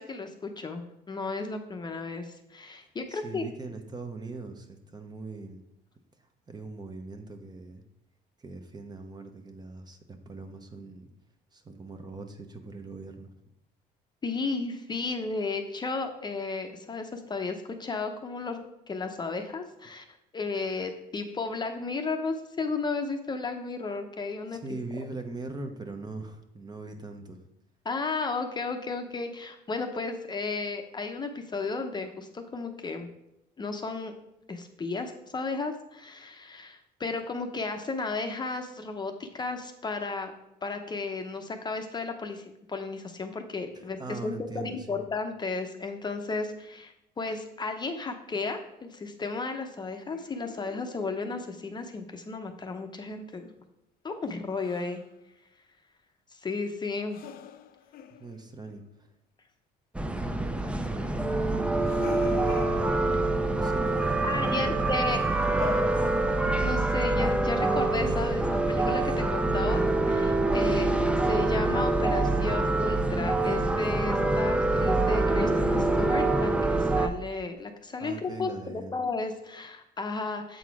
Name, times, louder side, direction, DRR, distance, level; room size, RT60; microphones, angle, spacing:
voice 1, 0.0-3.4 14.2-20.0 20.3-24.6 27.8-33.1 33.6-34.1 34.5-40.3 40.6-53.5 54.0-55.0 56.3-57.2 64.2-65.2 66.6-70.9 71.2-80.6, left 3 dB, 25° left, 5 dB, 0.7 m, -34 dB
voice 2, 3.1-5.6 6.5-7.8 8.4-11.1 11.5-13.3 24.5-27.4 43.7-45.0 58.2-58.9 60.6-62.6 63.6-66.2 78.0-79.0, right 3 dB, 25° right, 6 dB, 0.8 m, -41 dB
sound 1, 50.1-51.5 54.6-55.0 57.1-58.8 61.7-63.5 65.0-66.8, left 9 dB, 60° left, 0.5 m, -43 dB
sound 2, 59.9-77.1, right 2 dB, 5° right, 0.4 m, -25 dB
7.5 x 4.0 x 4.7 m, 0.86 s
cardioid pair, 110°, 17 cm